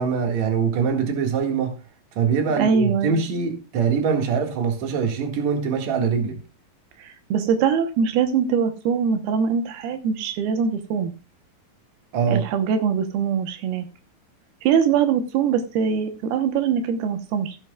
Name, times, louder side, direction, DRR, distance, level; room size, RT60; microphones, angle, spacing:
voice 1, 0.0-1.7 2.2-6.4 12.1-12.4, right 6 dB, 55° right, 2.8 m, -23 dB
voice 2, 2.6-3.2 7.0-11.1 12.3-13.9 14.6-17.6, right 7 dB, 85° right, 3.0 m, -22 dB
15.5 x 9.0 x 2.3 m
omnidirectional pair, 4.4 m